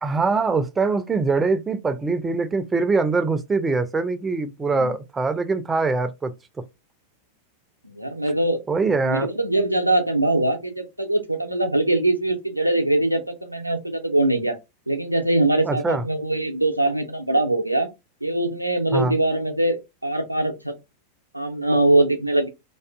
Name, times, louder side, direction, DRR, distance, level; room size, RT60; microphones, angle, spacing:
voice 1, 0.0-6.3 8.7-9.3 15.7-16.0 18.9-19.1, right 4 dB, 15° right, 0.4 m, -23 dB
voice 2, 4.6-4.9 7.8-8.6 9.0-14.6 14.9-17.9 18.2-19.8 20.0-20.8 21.3-22.5, right 2 dB, 90° right, 0.5 m, -22 dB
2.4 x 2.4 x 2.3 m
figure-of-eight pair, 90°, 0 cm